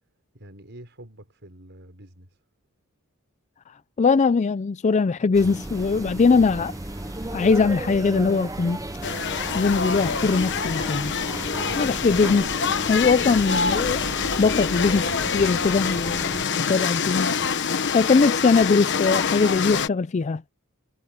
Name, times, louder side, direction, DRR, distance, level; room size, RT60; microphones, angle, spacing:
voice 1, 0.3-2.4 11.5-11.8, right 1 dB, 55° right, 6.0 m, -46 dB
voice 2, 4.0-6.7 7.3-8.8 9.5-11.1 11.8-12.5 12.9-14.0 14.4-17.4 17.9-20.4, left 4 dB, 35° left, 0.4 m, -21 dB
sound 1, 5.3-16.4, right 1 dB, 15° right, 0.7 m, -34 dB
sound 2, 5.4-17.5, left 2 dB, 15° left, 1.5 m, -44 dB
sound 3, 9.0-19.9, left 6 dB, 55° left, 1.1 m, -26 dB
head